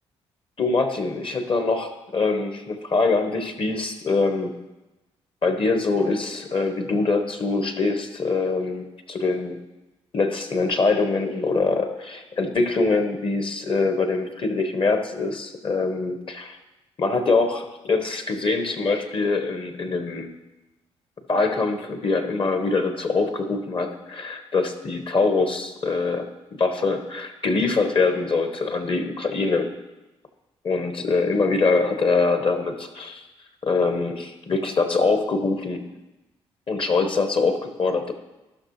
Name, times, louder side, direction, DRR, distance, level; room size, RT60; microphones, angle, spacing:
voice 1, 0.6-4.5 5.4-9.6 10.1-16.6 17.0-20.3 21.3-26.3 26.6-29.7 30.6-33.2 33.6-35.8 36.7-38.1, left 3 dB, 40° left, 7 dB, 1.3 m, -23 dB
14.5 x 6.3 x 3.2 m, 1.0 s
figure-of-eight pair, 40°, 14 cm